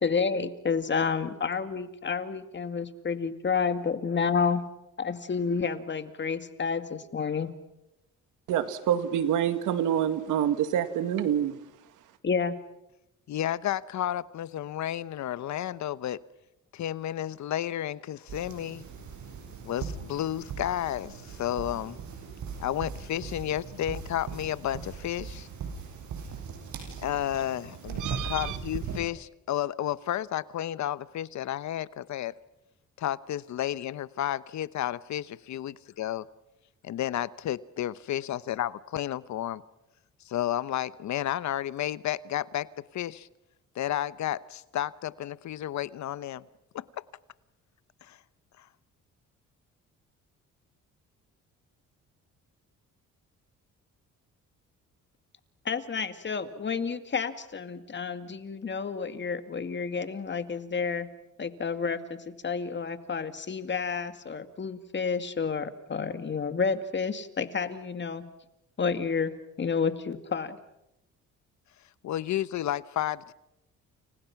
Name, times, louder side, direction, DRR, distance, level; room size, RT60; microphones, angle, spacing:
voice 1, 0.0-4.6 5.0-7.5 12.2-12.6 55.6-61.1 61.4-68.3 68.8-70.6, left 5 dB, 35° left, 2.2 m, -30 dB
voice 2, 8.5-11.5 28.0-28.6, right 10 dB, 90° right, 2.1 m, -27 dB
voice 3, 13.3-16.2 16.7-18.8 19.6-22.0 22.6-25.5 27.0-32.3 33.0-36.3 36.8-39.6 40.2-43.3 43.7-46.4 46.7-46.8 48.0-48.2 48.6-48.7 72.0-73.3, left 12 dB, 70° left, 1.0 m, -32 dB
sound 1, 18.3-29.0, right 6 dB, 70° right, 7.7 m, -39 dB
30.0 x 29.5 x 6.0 m
cardioid pair, 90°, 30 cm